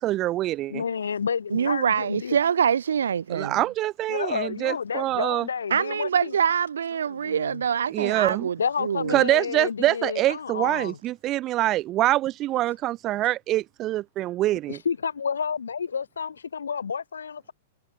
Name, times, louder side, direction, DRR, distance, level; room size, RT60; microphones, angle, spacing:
voice 1, 0.0-0.8 3.3-5.5 7.9-8.5 9.1-14.8, right 15 dB, 30° right, 1.6 m, -25 dB
voice 2, 0.7-2.4 4.1-6.3 7.0-7.6 8.6-11.0 14.7-17.5, left 6 dB, 70° left, 5.6 m, -30 dB
voice 3, 1.5-3.6 5.7-9.2, right 7 dB, 70° right, 1.5 m, -25 dB
figure-of-eight pair, 105°, 0 cm